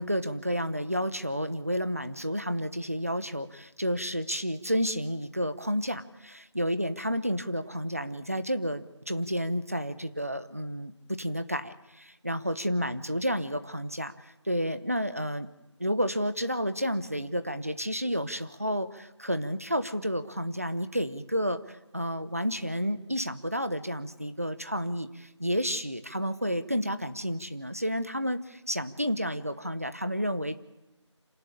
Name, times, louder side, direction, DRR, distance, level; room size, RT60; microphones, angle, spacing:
voice 1, 0.0-14.1 14.4-15.5 15.8-30.6, equal, 30° right, 12 dB, 1.0 m, -31 dB
27.0 x 17.5 x 10.0 m, 0.98 s
figure-of-eight pair, 180°, 16 cm